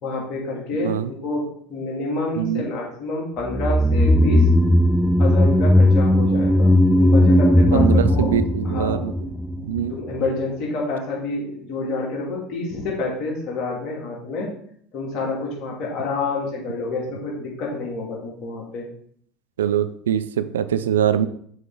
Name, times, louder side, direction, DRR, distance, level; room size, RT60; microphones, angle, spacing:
voice 1, 0.0-4.5 5.2-8.3 8.6-9.0 9.9-14.5 14.9-18.9, left 3 dB, 55° left, -2 dB, 2.4 m, -28 dB
voice 2, 0.8-1.1 2.4-2.7 7.7-9.1 9.6-10.0 19.6-21.3, right 9 dB, 80° right, 13 dB, 0.3 m, -23 dB
sound 1, 3.5-9.9 10.1-10.2, left 1 dB, ahead, 0.4 m, -17 dB
6.3 x 4.4 x 3.8 m, 0.62 s
hypercardioid pair, 70°, 0 cm